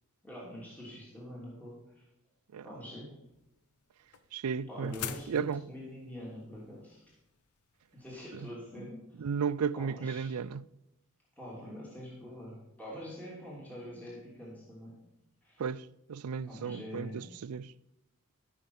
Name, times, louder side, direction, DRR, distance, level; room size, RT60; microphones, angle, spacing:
voice 1, 0.2-2.0 2.6-3.1 4.7-7.0 7.9-9.3 9.7-10.4 11.4-15.0 15.4-15.6 16.5-17.3, equal, 5° left, 2.9 m, -45 dB
sound 1, 3.2-8.5, left 8 dB, 75° left, 0.7 m, -46 dB
voice 2, 4.3-4.9 5.3-5.6 9.2-10.6 15.6-15.8 16.1-17.7, right 6 dB, 80° right, 0.4 m, -34 dB
15.0 x 6.3 x 5.5 m
head